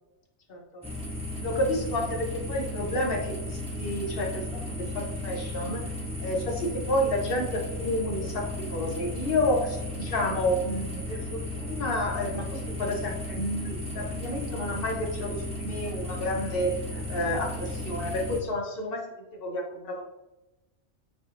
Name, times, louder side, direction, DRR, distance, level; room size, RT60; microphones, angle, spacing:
voice 1, 0.5-0.8 1.4-5.9 6.2-19.1 19.4-20.1, left 1 dB, 55° left, 1 dB, 1.0 m, -30 dB
sound 1, 0.8-18.4, left 1 dB, 5° right, 1.0 m, -35 dB
5.6 x 3.3 x 2.5 m, 0.98 s
omnidirectional pair, 1.2 m